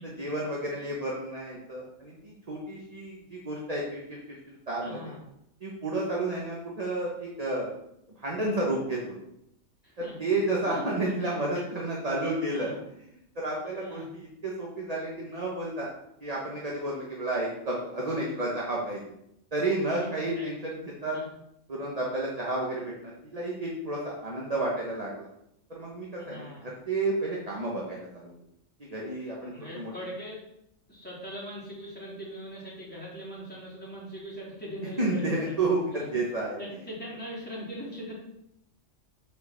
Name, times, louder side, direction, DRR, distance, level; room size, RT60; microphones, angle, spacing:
voice 1, 0.2-5.0 5.6-7.7 8.2-9.0 10.2-12.7 13.3-15.9 16.2-19.0 19.5-21.2 21.7-25.3 25.7-28.3 28.8-29.9 35.0-36.6, right 2 dB, 30° right, -3 dB, 1.3 m, -31 dB
voice 2, 4.8-5.2 9.8-10.2 10.6-11.6 12.2-12.8 13.8-14.1 19.9-20.5 21.1-21.3 26.1-26.6 29.4-30.4 30.9-35.5 35.9-36.2 36.6-38.1, equal, 5° left, -8 dB, 3.4 m, -41 dB
6.0 x 5.2 x 6.6 m, 0.79 s
omnidirectional pair, 1.4 m